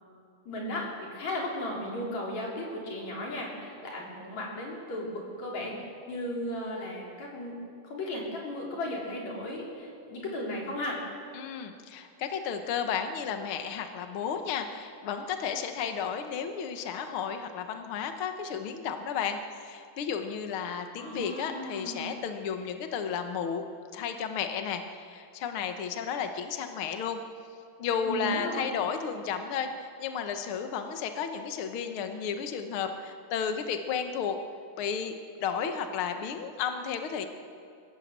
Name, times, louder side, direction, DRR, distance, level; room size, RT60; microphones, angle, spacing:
voice 1, 0.5-0.9 1.1-5.8 6.1-7.6 7.8-11.0 21.0-22.3 28.0-28.7, left 1 dB, 45° left, -3 dB, 5.2 m, -35 dB
voice 2, 11.3-23.6 23.9-27.2 27.8-34.4 34.8-35.1 35.4-37.3, left 7 dB, 85° left, 6 dB, 1.2 m, -33 dB
26.0 x 15.5 x 7.6 m, 2.3 s
omnidirectional pair, 4.4 m